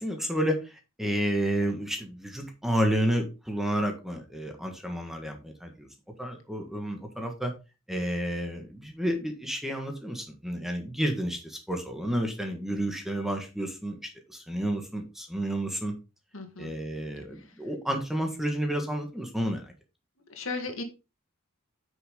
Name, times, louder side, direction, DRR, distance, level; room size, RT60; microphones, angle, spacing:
voice 1, 0.0-5.9 6.2-7.5 7.9-15.9 16.6-19.7, right 1 dB, ahead, 4 dB, 1.5 m, -30 dB
voice 2, 16.3-16.7 17.4-17.5 20.3-20.8, left 3 dB, 65° left, 5 dB, 2.0 m, -35 dB
9.3 x 6.3 x 3.7 m, 0.28 s
head